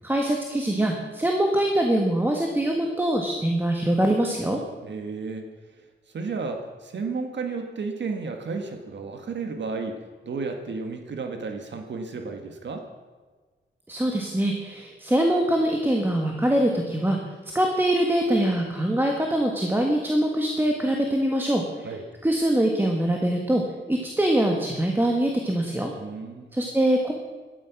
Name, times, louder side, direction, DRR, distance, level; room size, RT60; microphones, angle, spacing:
voice 1, 0.0-4.6 13.9-17.2 17.5-21.9 22.2-23.6 23.9-25.9 26.5-27.1, right 1 dB, 10° right, 1 dB, 1.5 m, -23 dB
voice 2, 4.8-5.5 6.1-12.9 21.8-22.0 26.0-26.5, right 4 dB, 70° right, 5 dB, 1.7 m, -33 dB
17.5 x 12.5 x 6.0 m, 1.4 s
wide cardioid pair, 165°, 19 cm